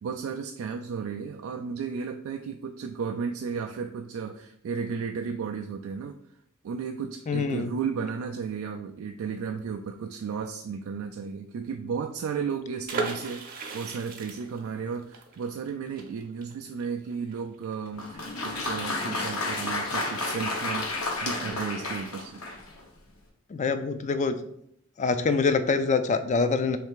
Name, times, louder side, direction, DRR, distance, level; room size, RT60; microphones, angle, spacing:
voice 1, 0.0-6.2 6.6-22.4, right 6 dB, 70° right, 4 dB, 0.3 m, -34 dB
voice 2, 7.3-7.7 23.5-24.4 25.0-26.8, left 4 dB, 35° left, 10 dB, 0.3 m, -25 dB
sound 1, 12.9-18.5 18.8-18.9 19.2-19.5, right 3 dB, 45° right, 0.7 m, -36 dB
Applause, 17.9-22.8, left 2 dB, 70° left, 1.0 m, -31 dB
3.3 x 3.2 x 4.7 m, 0.72 s
head